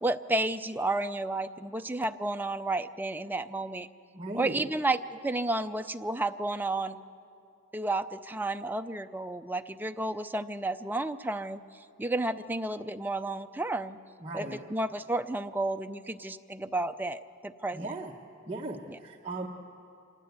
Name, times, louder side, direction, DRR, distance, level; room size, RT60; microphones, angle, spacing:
voice 1, 0.0-3.9 4.3-7.0 7.7-11.6 12.0-14.0 14.3-17.9 18.9-19.0, right 2 dB, 10° right, 8 dB, 0.5 m, -32 dB
voice 2, 4.1-4.6 14.2-14.7 17.7-18.1 18.5-19.5, right 2 dB, 25° right, -1 dB, 1.0 m, -37 dB
25.5 x 19.0 x 8.2 m, 2.6 s
head